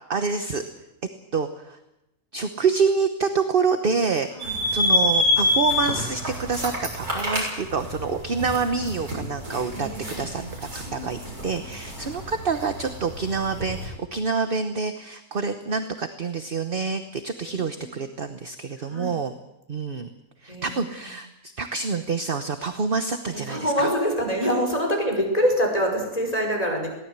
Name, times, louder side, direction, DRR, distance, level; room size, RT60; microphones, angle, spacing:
voice 1, 0.1-0.6 1.3-1.8 2.3-4.3 4.7-9.9 10.2-10.4 10.7-19.3 19.7-20.1 20.4-23.9 24.4-24.5, right 5 dB, 40° right, 8 dB, 1.2 m, -27 dB
sound 1, 4.4-13.9, left 1 dB, 85° right, 7.2 m, -27 dB
voice 2, 9.5-10.5 10.9-11.1 11.7-11.8 17.8-18.0 18.9-19.2 20.5-20.8 23.3-26.9, equal, 25° left, 1 dB, 5.6 m, -26 dB
22.0 x 17.5 x 8.1 m, 0.89 s
omnidirectional pair, 1.5 m